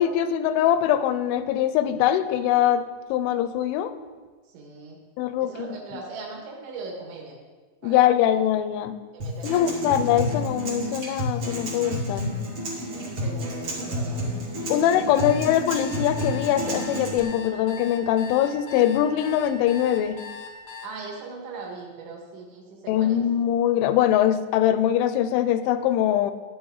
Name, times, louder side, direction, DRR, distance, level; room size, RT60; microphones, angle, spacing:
voice 1, 0.0-2.8 3.1-3.9 5.2-5.7 7.8-8.9 9.4-12.3 14.7-20.2 22.9-26.3, left 11 dB, 85° left, 11 dB, 3.0 m, -22 dB
voice 2, 4.5-5.0 5.4-7.4 7.8-8.0 9.1-9.8 12.8-14.3 14.7-15.2 20.8-23.2, right 4 dB, 75° right, 0 dB, 4.1 m, -39 dB
Acoustic guitar, 9.2-17.2, equal, 40° right, 2.3 m, -30 dB
sound 1, 15.2-20.9, left 5 dB, 70° left, 1.9 m, -40 dB
14.0 x 9.3 x 4.0 m, 1.4 s
omnidirectional pair, 5.4 m